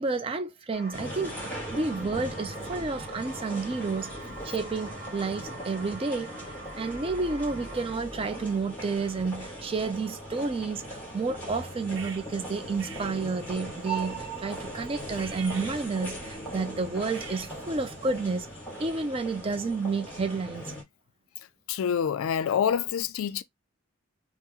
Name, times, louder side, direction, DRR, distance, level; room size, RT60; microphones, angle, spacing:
voice 1, 0.0-4.2 4.4-6.3 6.7-18.5 18.8-20.7, right 4 dB, 25° right, 0.4 m, -30 dB
sound 1, 0.7-7.9, right 1 dB, 45° right, 1.2 m, -45 dB
sound 2, 0.9-20.8, right 1 dB, 10° left, 1.3 m, -39 dB
sound 3, 11.4-18.6, right 4 dB, 60° right, 0.8 m, -47 dB
voice 2, 21.7-23.4, left 8 dB, 75° left, 0.3 m, -26 dB
2.8 x 2.0 x 3.5 m
head